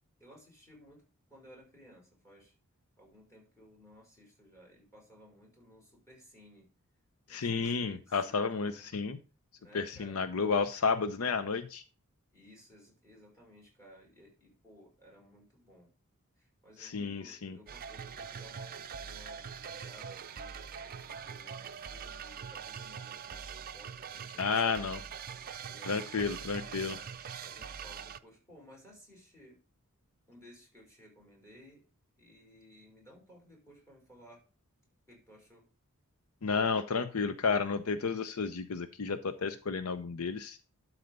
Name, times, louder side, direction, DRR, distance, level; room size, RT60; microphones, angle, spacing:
voice 1, 0.2-1.0 1.3-2.5 3.0-6.7 7.3-8.9 9.6-10.2 12.3-15.9 16.4-20.5 20.8-24.9 25.6-26.8 27.4-29.6 30.3-31.8 32.2-34.4 35.1-35.7, equal, 15° left, -2 dB, 5.4 m, -57 dB
voice 2, 7.3-9.2 9.7-11.8 16.8-17.6 24.4-25.0 25.9-27.0 36.4-40.6, left 5 dB, 75° left, 11 dB, 0.6 m, -32 dB
sound 1, 17.7-28.2, right 7 dB, 45° right, 0.5 m, -43 dB
12.0 x 4.2 x 5.3 m, 0.35 s
head